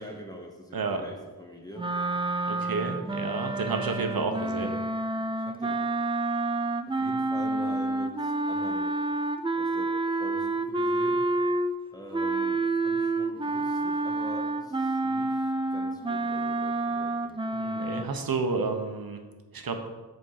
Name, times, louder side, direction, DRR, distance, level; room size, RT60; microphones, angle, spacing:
voice 1, 0.0-1.9 5.3-5.8 6.9-9.0 9.5-11.3 11.9-17.4, equal, 10° left, 0 dB, 1.1 m, -44 dB
sound 1, 1.8-11.8 12.1-18.0, right 2 dB, 15° right, 0.3 m, -29 dB
voice 2, 2.5-4.7 17.5-19.2 19.5-19.8, right 4 dB, 65° right, 5 dB, 1.1 m, -30 dB
8.0 x 4.4 x 6.6 m, 1.2 s
wide cardioid pair, 125°, 39 cm